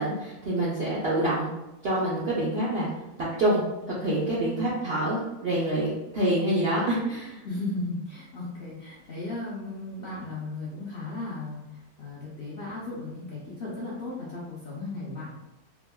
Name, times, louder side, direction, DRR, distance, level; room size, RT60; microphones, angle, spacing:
voice 1, 0.0-1.5 1.8-2.9 3.4-3.6 4.0-7.4, right 1 dB, 65° right, -6 dB, 0.6 m, -26 dB
voice 2, 7.4-15.3, left 2 dB, 55° left, -8 dB, 0.6 m, -36 dB
3.4 x 2.2 x 2.2 m, 0.96 s
omnidirectional pair, 1.7 m